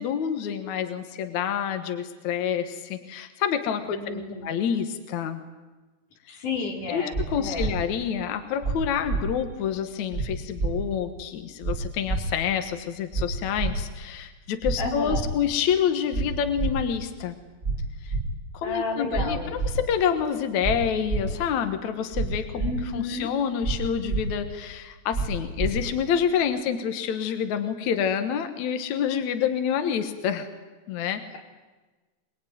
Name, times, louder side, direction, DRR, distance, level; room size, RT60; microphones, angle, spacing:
voice 1, 0.0-5.4 6.3-6.4 6.9-17.4 18.0-18.2 18.6-22.6 22.9-30.5 30.9-31.2, left 8 dB, 70° left, 8 dB, 1.8 m, -28 dB
voice 2, 3.9-4.5 6.3-7.7 14.8-15.3 18.6-19.6 22.5-23.3, left 3 dB, 45° left, 1 dB, 4.8 m, -32 dB
sound 1, 7.1-7.2 7.6-7.7 8.6-8.7 9.1-9.2 10.1-10.3 10.6-10.7 11.6-11.7 12.1-12.2 13.1-13.2 13.6-13.7 14.6-14.8 15.1-15.2 16.1-16.2 16.6-16.7 17.6-17.8 18.1-18.2 19.1-19.2 19.6-19.7 20.6-20.7 21.1-21.2 22.1-22.3 22.6-22.7 23.6-23.8 24.1-24.2 25.1-25.3 25.6-25.7, right 4 dB, 15° right, 4.0 m, -26 dB
24.0 x 22.5 x 9.4 m, 1.2 s
omnidirectional pair, 5.4 m